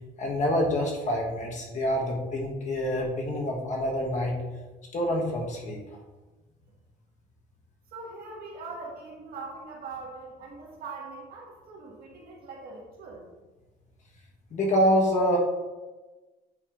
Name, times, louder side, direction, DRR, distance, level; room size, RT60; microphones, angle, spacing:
voice 1, 0.2-4.3 4.9-5.8 14.5-15.4, equal, 45° left, 0 dB, 1.4 m, -26 dB
voice 2, 7.9-13.3, right 3 dB, 65° right, -2 dB, 1.8 m, -41 dB
8.1 x 5.3 x 2.6 m, 1.2 s
cardioid pair, 110°, 17 cm